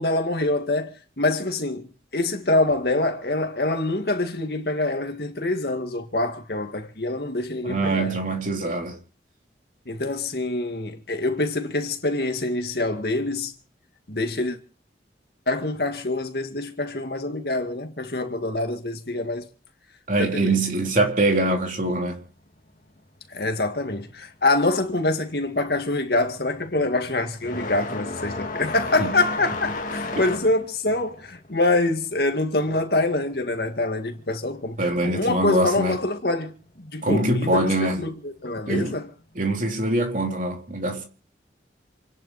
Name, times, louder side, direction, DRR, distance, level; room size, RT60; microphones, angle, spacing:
voice 1, 0.0-8.2 9.9-13.5 14.1-14.6 15.5-19.5 20.2-20.5 23.3-36.5 36.8-37.6 38.0-39.1, left 2 dB, 60° left, 2.1 m, -25 dB
voice 2, 7.6-9.0 20.1-22.2 29.0-29.1 34.8-36.0 37.0-38.1 38.7-38.9 39.3-41.0, right 2 dB, 45° right, 3.3 m, -23 dB
sound 1, 24.8-25.2 25.5-33.8 34.1-35.1 36.1-36.2 37.0-37.1 38.9-39.0, left 2 dB, 45° left, 2.4 m, -34 dB
28.0 x 11.0 x 4.3 m
head